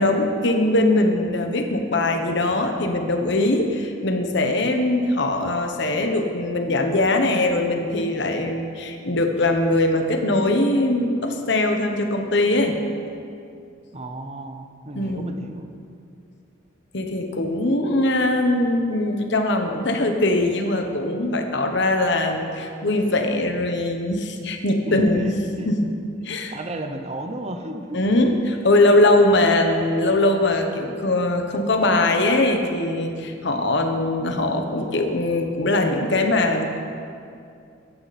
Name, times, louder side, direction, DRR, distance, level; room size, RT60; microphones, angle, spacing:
voice 1, 0.0-12.7 14.9-15.3 16.9-25.3 25.6-25.9 26.2-26.5 27.9-36.7, left 2 dB, 65° left, 4 dB, 1.3 m, -21 dB
voice 2, 13.9-15.7 24.9-25.3 25.6-25.7 26.5-28.0 28.3-28.4, right 1 dB, 35° right, 6 dB, 0.9 m, -33 dB
15.0 x 13.0 x 4.3 m, 2.5 s
head